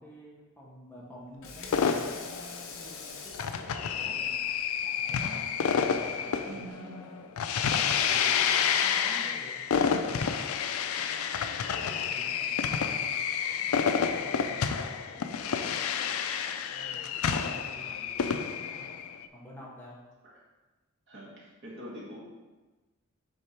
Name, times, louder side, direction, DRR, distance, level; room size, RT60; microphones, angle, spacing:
voice 1, 0.0-4.4 4.8-5.4 5.7-7.3 7.6-9.6 10.2-16.1 16.7-19.0 19.3-20.0, equal, 10° left, -5 dB, 1.1 m, -50 dB
Water tap faucet / Sink (filling or washing), 1.2-6.7, left 5 dB, 70° left, 0.8 m, -47 dB
sound 1, 1.7-19.2, left 7 dB, 85° left, 0.4 m, -29 dB
voice 2, 6.4-7.2 9.4-9.7 20.2-20.4 21.1-22.2, equal, 55° right, -7 dB, 1.8 m, -45 dB
6.5 x 3.6 x 4.5 m, 1.2 s
head